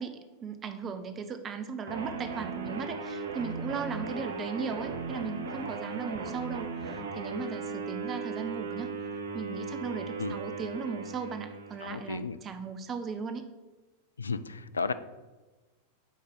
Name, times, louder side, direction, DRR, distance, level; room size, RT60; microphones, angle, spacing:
voice 1, 0.0-8.9 9.3-13.4, right 5 dB, 25° right, 8 dB, 0.5 m, -37 dB
sound 1, 1.9-12.1, right 4 dB, 65° right, 0.8 m, -37 dB
voice 2, 11.8-12.4 14.2-14.9, left 4 dB, 75° left, 13 dB, 0.3 m, -33 dB
6.1 x 3.9 x 5.4 m, 1.2 s
figure-of-eight pair, 90°, 0 cm